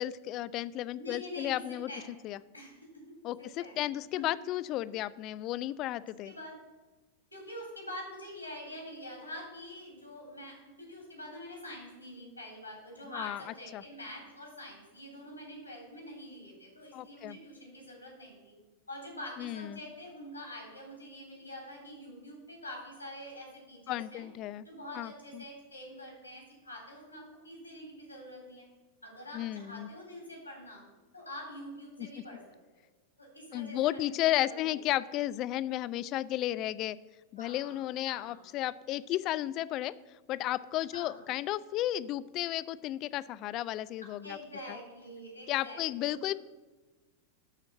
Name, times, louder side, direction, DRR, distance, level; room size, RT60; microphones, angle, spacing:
voice 1, 0.0-1.9 2.2-2.4 3.2-6.3 13.1-13.4 13.7-13.8 16.9-17.4 19.4-19.8 23.9-24.7 24.9-25.4 29.3-29.9 32.0-32.1 33.5-37.0 37.3-39.9 40.3-44.4 45.5-46.3, left 14 dB, 35° left, 17 dB, 0.3 m, -33 dB
voice 2, 1.0-2.1 2.5-3.0 3.4-3.8 6.2-6.6 7.3-18.5 18.9-24.2 24.6-28.7 29.0-30.8 31.1-32.4 32.7-32.8 33.2-34.1 34.4-34.8 37.4-38.4 40.9-41.3 44.2-46.2, left 1 dB, 85° left, -2 dB, 3.4 m, -46 dB
11.5 x 4.4 x 6.7 m, 1.2 s
figure-of-eight pair, 90°, 0 cm